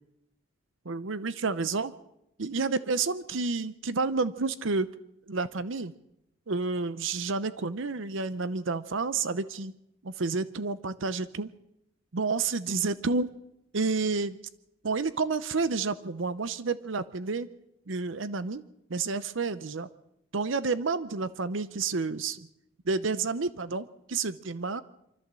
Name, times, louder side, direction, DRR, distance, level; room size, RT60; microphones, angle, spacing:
voice 1, 0.8-1.9 2.4-4.9 5.3-5.9 6.5-9.7 10.0-11.5 12.1-13.3 13.7-14.4 14.8-17.5 17.9-18.6 18.9-19.9 20.3-22.5 22.8-24.8, right 4 dB, 75° right, 14 dB, 0.7 m, -30 dB
24.5 x 14.0 x 7.6 m, 0.84 s
head